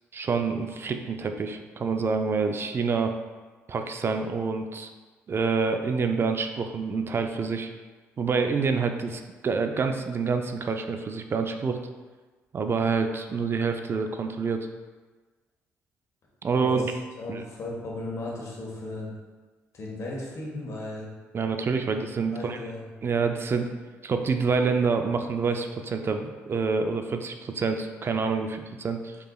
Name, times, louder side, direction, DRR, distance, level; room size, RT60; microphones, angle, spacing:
voice 1, 0.1-3.1 3.7-4.9 5.3-7.7 8.2-11.8 12.5-14.6 16.4-16.9 17.3-17.4 21.3-22.6 23.0-23.7 24.0-29.2, right 5 dB, 40° right, 6 dB, 0.4 m, -27 dB
voice 2, 17.2-19.1 19.7-21.1 22.3-22.8, left 2 dB, 55° left, -3 dB, 1.5 m, -35 dB
4.7 x 4.7 x 2.4 m, 1.3 s
supercardioid pair, 60°, 6 cm